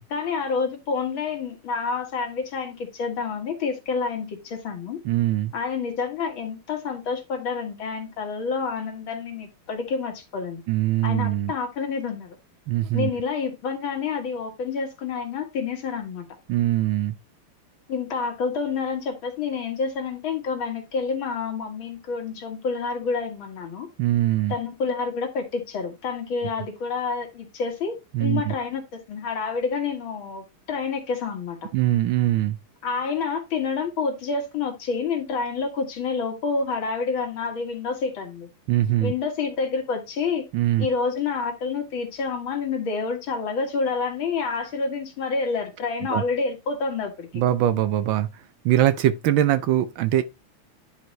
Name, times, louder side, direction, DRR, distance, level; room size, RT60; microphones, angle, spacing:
voice 1, 0.1-5.0 5.5-10.6 11.0-12.4 12.9-16.3 17.9-23.9 24.5-31.7 32.8-38.5 39.0-40.5 40.8-47.4, left 5 dB, 65° left, 2.3 m, -28 dB
voice 2, 5.0-5.5 10.7-11.5 12.7-13.1 16.5-17.2 24.0-24.5 28.1-28.5 31.7-32.6 38.7-39.1 40.5-40.9 46.1-46.2 47.3-48.3 48.6-50.2, right 13 dB, 75° right, 1.3 m, -22 dB
10.5 x 4.6 x 3.1 m
omnidirectional pair, 2.4 m